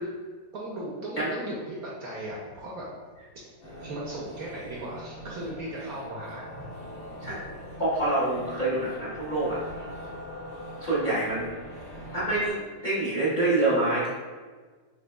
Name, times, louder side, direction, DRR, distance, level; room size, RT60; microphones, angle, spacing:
voice 1, 0.5-2.9 3.4-3.5 3.8-6.7 7.2-7.4 9.7-9.9, right 1 dB, 65° right, -4 dB, 1.0 m, -37 dB
sound 1, 3.6-12.5, equal, 60° left, 2.1 m, -42 dB
voice 2, 7.8-9.6 10.8-11.6 12.1-14.1, right 2 dB, 35° left, -9 dB, 0.9 m, -26 dB
6.3 x 3.1 x 2.2 m, 1.4 s
omnidirectional pair, 2.0 m